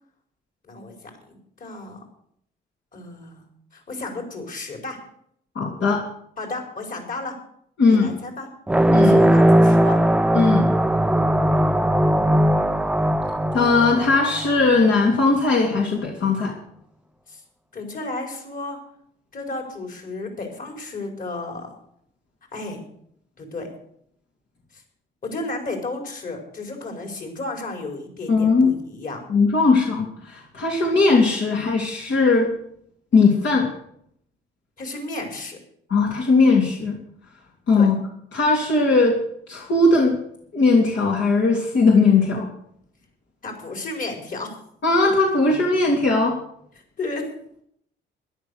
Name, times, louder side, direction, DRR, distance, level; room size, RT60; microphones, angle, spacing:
voice 1, 1.3-2.0 2.9-3.4 3.7-5.0 6.4-7.3 7.9-8.5 8.9-10.0 17.3-17.4 17.7-18.8 19.3-21.7 22.5-22.8 23.4-23.7 24.7-24.8 25.2-29.2 34.8-35.6 37.8-37.9 43.4-44.5 47.0-47.3, left 2 dB, 45° left, 3 dB, 4.7 m, -33 dB
voice 2, 5.5-6.0 7.8-8.1 8.9-9.3 10.3-10.7 13.5-16.5 28.3-28.7 29.3-32.5 33.1-33.7 35.9-37.0 37.7-37.9 38.3-39.2 39.5-40.2 40.5-42.5 44.8-46.4, left 3 dB, 65° left, -2 dB, 3.1 m, -18 dB
sound 1, 8.7-14.8, right 1 dB, 5° right, 0.5 m, -18 dB
13.0 x 11.0 x 6.5 m, 0.69 s
cardioid pair, 90°, 20 cm